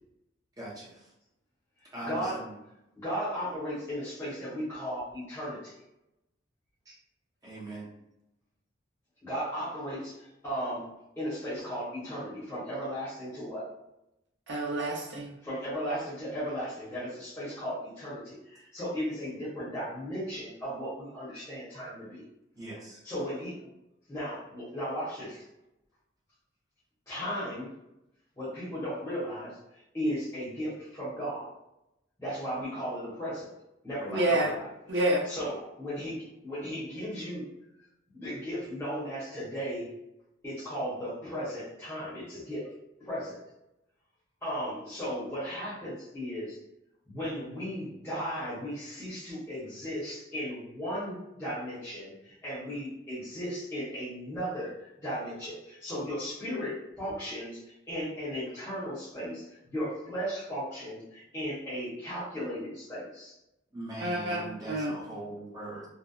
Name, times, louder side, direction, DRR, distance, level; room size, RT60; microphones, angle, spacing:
voice 1, 0.6-1.0 1.9-2.5 6.9-7.0 7.4-7.9 22.5-23.0 63.7-65.9, right 2 dB, 20° right, -6 dB, 0.7 m, -41 dB
voice 2, 2.0-2.4 3.0-5.7 9.2-10.8 11.2-13.7 15.4-22.2 23.0-23.6 24.1-25.4 27.1-27.7 28.4-29.6 29.9-31.5 32.2-33.5 33.8-34.7 35.3-37.4 38.1-39.9 40.4-42.7 43.0-43.4 44.4-46.6 47.1-63.4, equal, 15° left, -11 dB, 1.0 m, -36 dB
voice 3, 14.5-15.3 34.1-34.5 34.9-35.2 64.0-64.4 64.7-64.9, right 1 dB, 60° right, -3 dB, 0.7 m, -28 dB
2.7 x 2.1 x 2.3 m, 0.86 s
head